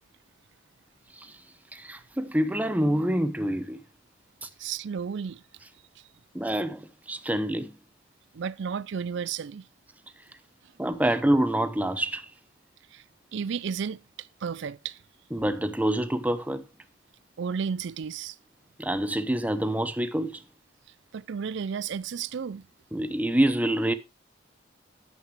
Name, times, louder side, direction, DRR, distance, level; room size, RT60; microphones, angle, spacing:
voice 1, 1.7-3.8 4.4-4.5 6.3-7.7 10.8-12.3 15.3-16.6 18.8-20.4 22.9-23.9, right 1 dB, 10° right, 0.7 m, -26 dB
voice 2, 4.6-5.4 8.3-9.6 12.9-13.0 13.3-15.0 17.4-18.4 21.1-22.7, right 6 dB, 70° right, 0.4 m, -33 dB
10.0 x 8.0 x 3.2 m
head